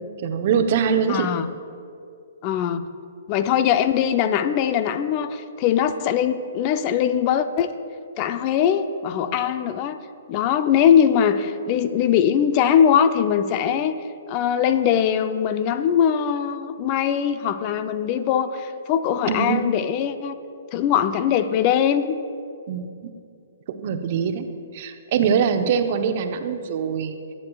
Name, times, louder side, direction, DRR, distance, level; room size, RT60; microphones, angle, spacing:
voice 1, 0.2-1.3 19.3-19.6 22.7-22.9 23.8-24.5 24.7-27.2, right 7 dB, 50° right, 7 dB, 0.8 m, -23 dB
voice 2, 1.1-1.5 2.4-2.9 3.3-7.7 8.2-10.0 10.3-13.9 14.3-20.3 20.7-22.2, left 8 dB, 35° left, 11 dB, 0.6 m, -21 dB
22.0 x 8.6 x 2.4 m, 2.4 s
hypercardioid pair, 130°, 0 cm